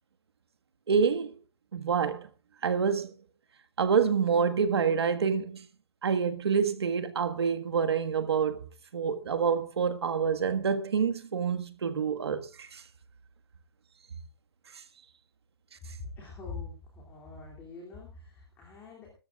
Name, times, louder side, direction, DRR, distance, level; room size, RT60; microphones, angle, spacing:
voice 1, 0.9-1.3 1.7-2.3 2.6-3.1 3.8-5.6 6.0-8.7 8.9-12.8 14.7-14.8, right 6 dB, 75° right, 1.6 m, -27 dB
voice 2, 16.0-19.1, left 4 dB, 15° left, 2.8 m, -44 dB
22.5 x 13.0 x 2.4 m
hypercardioid pair, 165°, 14 cm